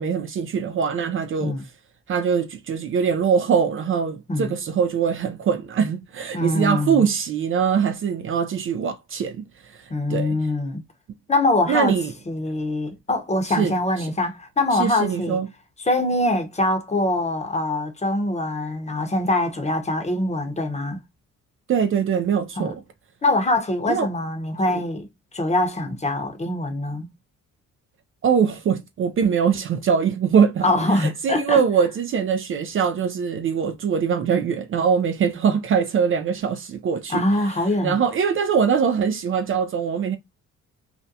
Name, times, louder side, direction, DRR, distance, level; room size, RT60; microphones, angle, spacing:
voice 1, 0.0-1.6 2.1-10.3 11.7-12.1 13.6-13.7 14.0-14.1 14.7-15.5 21.7-22.7 23.9-24.1 24.7-24.8 28.2-37.2 37.8-40.2, right 7 dB, 45° right, 0.4 m, -22 dB
voice 2, 6.3-7.0 9.9-10.8 11.3-11.9 12.3-15.4 15.8-21.0 22.6-22.7 23.2-25.1 25.3-27.1 30.6-31.6 37.1-38.0, left 2 dB, 20° left, 0.7 m, -23 dB
2.4 x 2.1 x 2.7 m
cardioid pair, 90°, 30 cm